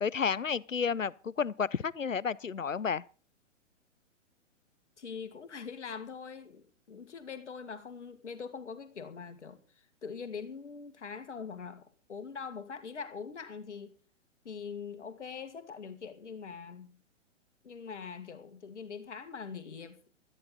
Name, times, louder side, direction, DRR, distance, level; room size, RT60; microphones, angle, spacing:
voice 1, 0.0-3.0, left 6 dB, 90° left, 0.7 m, -31 dB
voice 2, 5.0-13.9 14.4-17.0 17.6-20.0, left 6 dB, 65° left, 2.0 m, -43 dB
18.0 x 13.0 x 3.9 m
figure-of-eight pair, 115°, 38 cm